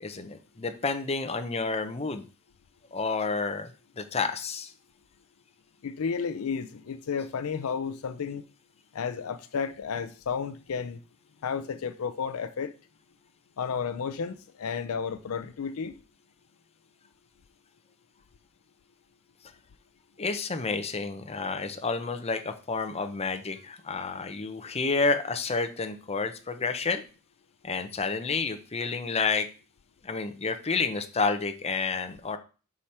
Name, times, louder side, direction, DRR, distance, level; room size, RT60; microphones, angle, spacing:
voice 1, 0.0-2.3 2.9-3.7 4.0-4.7 20.2-27.0 27.6-29.5 30.0-32.4, left 4 dB, 30° left, 0.7 m, -30 dB
voice 2, 5.8-8.4 8.9-11.0 11.4-12.7 13.6-15.9, left 6 dB, 70° left, 0.4 m, -32 dB
5.8 x 4.9 x 4.3 m
head